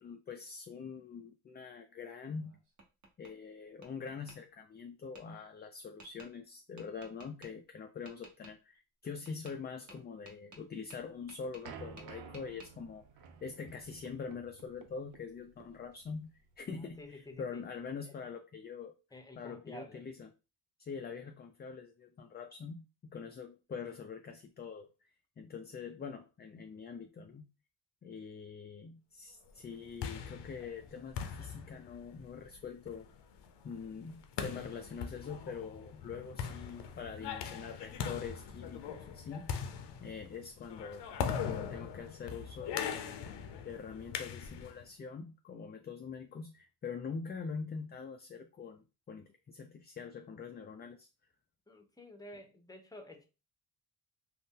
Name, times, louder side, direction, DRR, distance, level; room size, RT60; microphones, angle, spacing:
voice 1, 0.0-2.5 3.2-16.3 16.6-18.9 19.4-20.3 20.8-24.9 25.4-27.5 28.0-33.1 33.6-39.6 40.0-41.0 41.4-43.0 43.6-51.1, left 5 dB, 25° left, 5 dB, 0.3 m, -44 dB
Tap, 2.3-3.3 3.8-4.4 5.1-5.2 6.0-6.3 6.8-7.5 8.1-8.5 9.3-9.6 9.9-11.7 12.0-12.7, right 2 dB, 40° right, 1.0 m, -55 dB
sound 1, 11.0-17.9, right 6 dB, 85° right, 0.6 m, -53 dB
voice 2, 16.7-17.6 18.0-18.2 19.1-20.0 51.7-53.3, left 1 dB, 10° left, 6 dB, 0.7 m, -51 dB
sound 2, 29.7-44.8, left 7 dB, 70° left, 0.6 m, -41 dB
2.6 x 2.1 x 3.6 m, 0.30 s
supercardioid pair, 65°, 43 cm